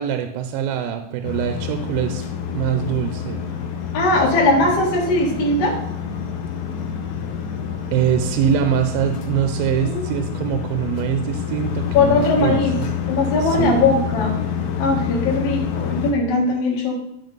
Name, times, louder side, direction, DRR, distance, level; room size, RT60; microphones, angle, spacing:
voice 1, 0.0-2.2 2.5-3.4 7.9-12.9 13.4-13.9, right 9 dB, 80° right, 6 dB, 2.4 m, -23 dB
sound 1, 0.6-13.4 13.7-16.0, right 3 dB, 5° left, 1.5 m, -42 dB
sound 2, 1.2-16.1, left 8 dB, 75° left, 1.7 m, -27 dB
voice 2, 3.9-5.8 9.8-10.1 11.9-12.8 13.1-14.4 14.8-17.0, left 2 dB, 50° left, -3 dB, 2.4 m, -19 dB
12.5 x 5.0 x 3.9 m, 0.80 s
omnidirectional pair, 4.4 m